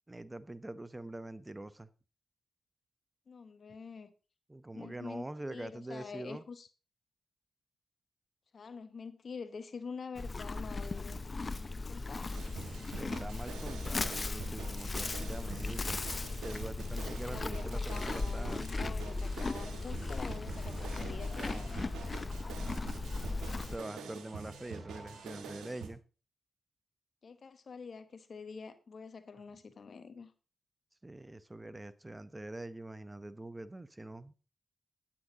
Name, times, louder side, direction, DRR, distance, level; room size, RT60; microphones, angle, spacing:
voice 1, 0.1-1.9 4.5-6.4 12.9-16.0 16.4-18.7 22.4-22.8 23.7-26.0 31.0-34.3, right 1 dB, 20° right, 0.8 m, -44 dB
voice 2, 3.3-4.1 4.7-6.7 8.5-11.2 11.9-12.3 17.3-21.9 27.2-30.3, left 5 dB, 60° left, 1.1 m, -46 dB
Livestock farm animals working animals, 10.2-23.8, left 3 dB, 40° left, 0.7 m, -37 dB
sound 1, 12.3-25.9, right 5 dB, 85° right, 1.4 m, -46 dB
sound 2, 20.1-25.5, right 3 dB, 65° right, 2.5 m, -56 dB
9.5 x 8.7 x 3.9 m
supercardioid pair, 45°, 0 cm